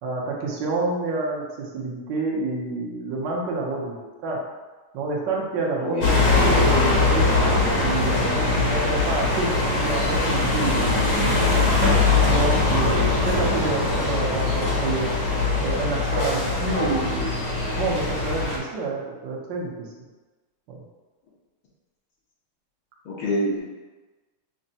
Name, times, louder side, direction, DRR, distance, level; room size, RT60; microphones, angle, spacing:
voice 1, 0.0-3.9 4.2-4.4 4.9-7.3 7.8-11.6 12.2-15.1 15.6-19.9 20.7-20.8, right 3 dB, 70° right, -3 dB, 1.3 m, -29 dB
sound 1, 6.0-18.6, left 3 dB, 55° left, 1.0 m, -21 dB
voice 2, 23.0-23.6, left 1 dB, 80° left, -6 dB, 1.7 m, -27 dB
6.0 x 2.1 x 2.7 m, 1.2 s
omnidirectional pair, 2.3 m